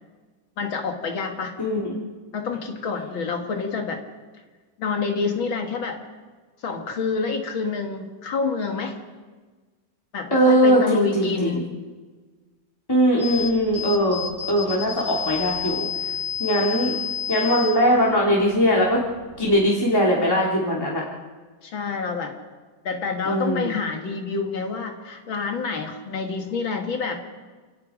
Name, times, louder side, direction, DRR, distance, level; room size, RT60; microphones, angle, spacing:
voice 1, 0.6-1.6 2.3-4.0 4.8-6.0 6.6-9.0 10.1-11.7 21.6-22.3 22.8-27.2, left 4 dB, 80° left, 4 dB, 2.7 m, -27 dB
voice 2, 1.6-2.0 10.3-11.6 12.9-16.1 16.4-16.9 17.3-19.0 19.4-21.0 23.2-23.7, equal, 10° left, -4 dB, 3.1 m, -20 dB
sound 1, 13.2-19.6, left 8 dB, 80° right, 7.2 m, -31 dB
28.5 x 18.5 x 5.2 m, 1.4 s
omnidirectional pair, 2.1 m